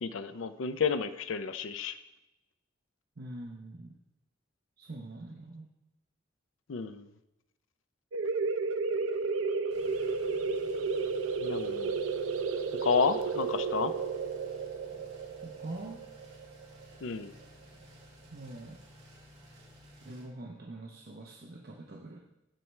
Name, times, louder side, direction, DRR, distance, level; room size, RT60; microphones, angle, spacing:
voice 1, 0.0-2.0 6.7-7.1 11.4-12.0 12.8-13.9 17.0-17.3, left 5 dB, 70° left, 12 dB, 0.5 m, -31 dB
voice 2, 3.2-3.9 4.8-5.7 15.4-16.0 18.3-18.8 20.0-22.2, right 2 dB, 50° right, -1 dB, 0.8 m, -44 dB
sound 1, 8.1-17.4, right 4 dB, 85° right, 0.5 m, -32 dB
sound 2, 9.7-20.2, equal, 30° right, 2.2 m, -55 dB
13.0 x 4.5 x 3.2 m, 0.91 s
head